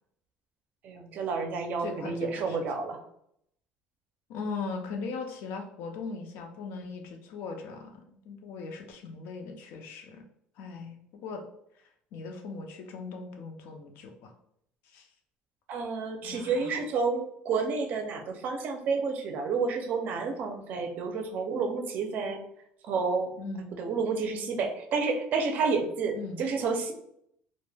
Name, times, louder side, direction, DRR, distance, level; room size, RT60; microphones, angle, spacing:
voice 1, 0.8-3.0 15.7-22.4 22.9-23.4 23.7-26.9, right 4 dB, 50° right, 5 dB, 0.4 m, -30 dB
voice 2, 1.8-2.6 4.3-10.2 10.6-11.4 11.8-14.3 14.8-15.1 16.2-16.8 23.4-23.7 26.1-26.4, left 4 dB, 75° left, 4 dB, 0.5 m, -39 dB
2.1 x 2.1 x 3.2 m, 0.73 s
cardioid pair, 150°, 4 cm